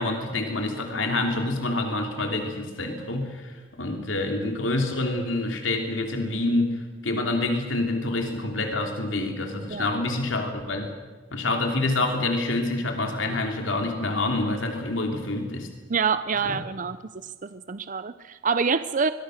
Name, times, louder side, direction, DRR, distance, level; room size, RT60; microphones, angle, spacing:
voice 1, 0.0-10.9 11.3-15.7 16.4-16.6, left 2 dB, 85° left, 3 dB, 3.2 m, -27 dB
voice 2, 15.9-17.0 17.2-19.1, right 5 dB, 45° right, 13 dB, 0.6 m, -26 dB
24.5 x 22.0 x 6.5 m, 1.4 s
head